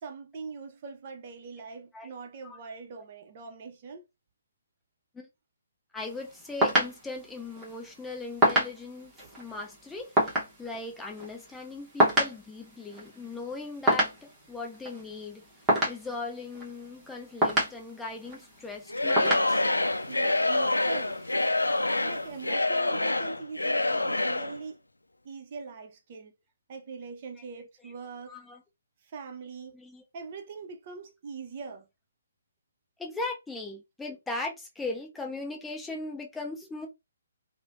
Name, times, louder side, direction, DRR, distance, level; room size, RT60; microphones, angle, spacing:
voice 1, 0.0-4.1 9.2-9.4 20.1-21.2 22.0-24.8 25.2-26.3 26.7-28.4 29.0-29.8 30.1-31.9, right 4 dB, 40° right, 0.5 m, -42 dB
voice 2, 5.9-15.4 15.9-19.6 27.8-27.9 28.3-28.6 29.7-30.0 33.0-36.9, left 3 dB, 5° left, 0.7 m, -39 dB
sound 1, 6.0-22.5, equal, 10° right, 1.0 m, -31 dB
Singing / Crowd, 18.9-24.6, left 2 dB, 85° left, 0.3 m, -27 dB
3.0 x 2.0 x 2.5 m
figure-of-eight pair, 135°, 0 cm